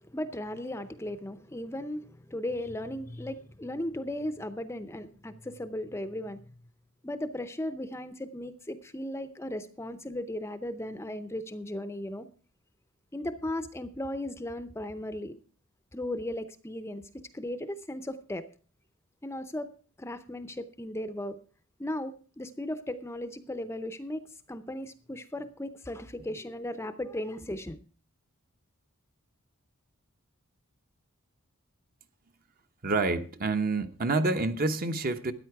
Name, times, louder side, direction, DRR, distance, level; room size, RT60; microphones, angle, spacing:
voice 1, 0.0-6.4 7.0-12.3 13.1-15.4 15.9-18.5 19.2-19.7 20.0-21.4 21.8-27.8, left 1 dB, 10° left, 0.6 m, -36 dB
voice 2, 32.8-35.3, right 3 dB, 40° right, 0.9 m, -28 dB
13.0 x 9.7 x 4.7 m
head